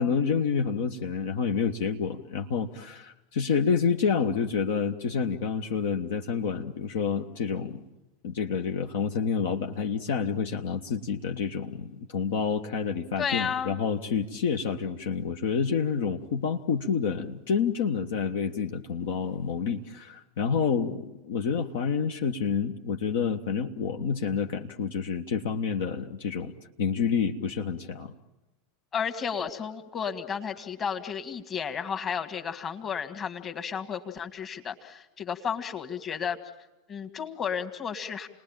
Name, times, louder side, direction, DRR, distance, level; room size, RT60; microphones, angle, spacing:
voice 1, 0.0-7.8 8.2-26.5 26.8-28.1, left 6 dB, 60° left, 4 dB, 1.1 m, -28 dB
voice 2, 13.2-13.8 28.9-36.4 36.9-38.3, left 7 dB, 25° left, 7 dB, 2.0 m, -32 dB
29.0 x 20.0 x 9.0 m, 1.0 s
figure-of-eight pair, 85°, 0 cm